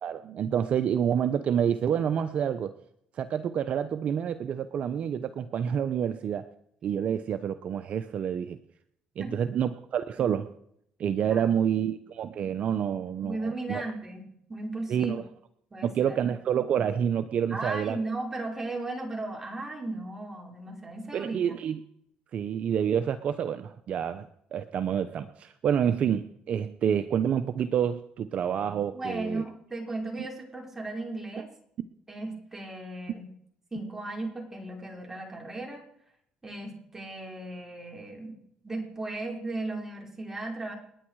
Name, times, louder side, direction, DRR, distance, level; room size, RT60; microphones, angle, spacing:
voice 1, 0.0-2.7 3.1-6.5 6.8-8.6 9.2-10.5 11.0-13.8 14.9-15.2 15.8-18.0 21.1-21.8 22.3-29.4 31.4-31.5, right 8 dB, 55° right, 11 dB, 0.9 m, -28 dB
voice 2, 11.3-11.8 13.2-14.2 14.5-15.2 15.7-16.2 17.5-21.4 28.9-31.5 32.1-33.2 33.7-35.8 36.4-38.4 38.6-40.8, right 2 dB, 15° right, 1 dB, 5.1 m, -36 dB
29.0 x 10.0 x 4.8 m, 0.72 s
cardioid pair, 95°, 3 cm